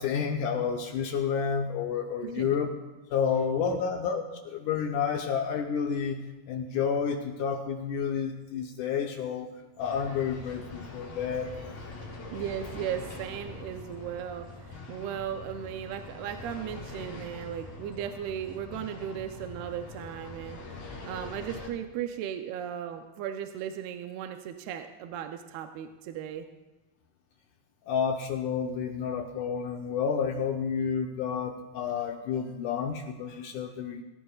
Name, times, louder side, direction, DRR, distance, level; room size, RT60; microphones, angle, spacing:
voice 1, 0.0-2.7 3.1-6.2 6.5-9.5 9.8-11.5 27.9-34.0, left 7 dB, 80° left, 3 dB, 1.8 m, -30 dB
sound 1, 9.8-21.7, left 3 dB, 55° left, 5.0 m, -43 dB
voice 2, 12.3-20.6 21.1-26.5, right 9 dB, 80° right, 6 dB, 2.6 m, -36 dB
24.5 x 14.5 x 2.4 m, 1.1 s
omnidirectional pair, 4.6 m